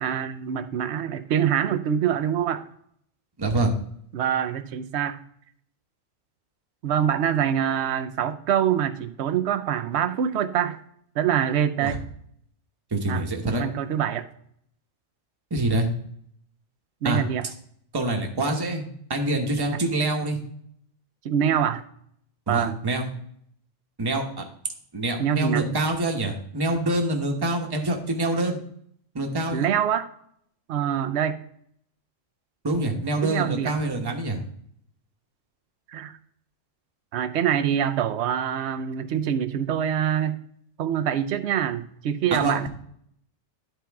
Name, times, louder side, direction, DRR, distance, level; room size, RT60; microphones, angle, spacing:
voice 1, 0.0-2.6 4.1-5.2 6.8-10.8 11.2-12.0 13.1-14.3 17.0-17.5 21.2-21.8 22.5-22.8 25.2-25.7 29.5-30.1 30.7-31.4 33.2-33.8 35.9-36.2 37.1-40.4 40.8-42.7, right 9 dB, 65° right, 11 dB, 0.8 m, -25 dB
voice 2, 3.4-3.7 11.8-12.0 12.9-13.6 15.5-15.9 17.0-17.2 17.9-18.8 19.1-20.4 22.5-23.1 24.0-24.4 24.9-28.6 29.1-29.7 32.6-34.4 42.3-42.7, right 2 dB, 20° right, 2 dB, 0.9 m, -25 dB
11.0 x 4.4 x 3.5 m, 0.67 s
omnidirectional pair, 1.4 m